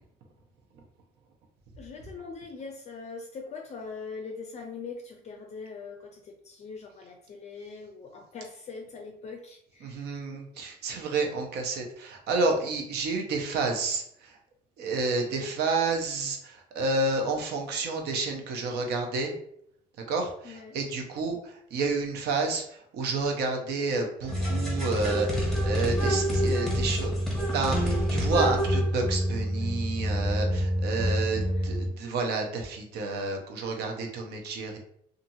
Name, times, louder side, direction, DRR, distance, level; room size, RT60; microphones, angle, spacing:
voice 1, 1.8-10.0 20.4-20.8 31.4-31.7, left 4 dB, 40° left, 2 dB, 0.4 m, -42 dB
voice 2, 9.8-14.0 14.8-19.3 20.1-22.6 22.9-27.1 27.5-34.8, right 3 dB, 75° right, 2 dB, 0.7 m, -30 dB
sound 1, 24.3-31.9, equal, ahead, 0.9 m, -27 dB
2.7 x 2.5 x 2.6 m, 0.68 s
cardioid pair, 110°, 17 cm